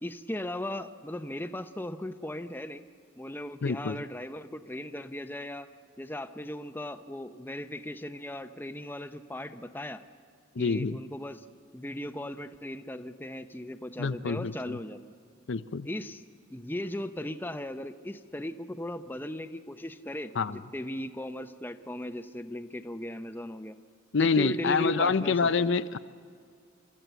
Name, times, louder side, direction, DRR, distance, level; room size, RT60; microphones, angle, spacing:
voice 1, 0.0-2.9 3.2-5.7 6.0-10.0 10.6-11.4 11.7-15.0 15.8-16.2 16.5-23.8 24.2-25.7, left 1 dB, 10° left, 9 dB, 0.6 m, -37 dB
voice 2, 3.6-4.0 10.6-11.0 14.0-14.8 15.5-15.9 20.4-20.6 24.1-26.0, left 5 dB, 65° left, 13 dB, 0.5 m, -27 dB
29.5 x 13.5 x 8.1 m, 2.1 s
head